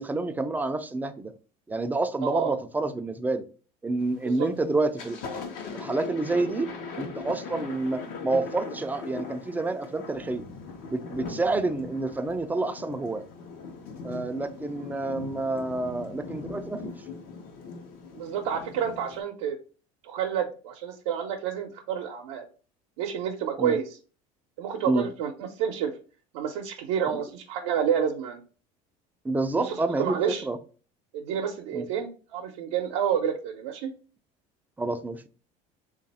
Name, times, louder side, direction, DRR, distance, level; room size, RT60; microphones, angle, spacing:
voice 1, 0.0-1.3 1.7-3.4 3.8-5.2 5.7-6.7 7.0-10.4 10.9-13.2 14.0-16.9 23.6-23.8 24.8-25.1 27.1-27.2 29.2-30.6 31.7-31.8 34.8-35.3, right 2 dB, 10° right, 0.4 m, -28 dB
voice 2, 2.2-2.6 4.2-4.5 18.1-19.6 20.0-22.4 23.0-24.0 24.6-25.9 26.3-28.4 29.6-30.4 31.1-33.9, right 8 dB, 85° right, 0.6 m, -29 dB
Thunder, 4.0-4.4 4.8-19.2, left 5 dB, 70° left, 0.9 m, -40 dB
3.3 x 2.5 x 4.0 m
supercardioid pair, 120°, 15 cm